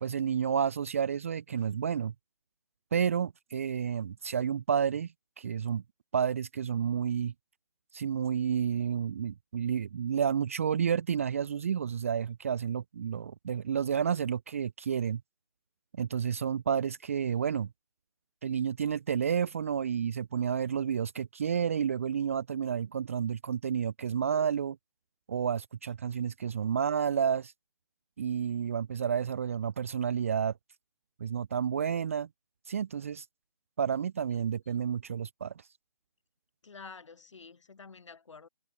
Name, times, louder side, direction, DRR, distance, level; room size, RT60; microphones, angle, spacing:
voice 1, 0.0-2.1 2.9-5.1 5.4-5.8 6.1-7.3 7.9-15.2 16.0-17.7 18.4-24.8 25.3-27.5 28.2-30.5 31.2-32.3 32.7-33.3 33.8-35.5, right 7 dB, 20° right, 0.6 m, -30 dB
voice 2, 36.6-38.5, left 5 dB, 50° left, 4.2 m, -49 dB
figure-of-eight pair, 150°, 20 cm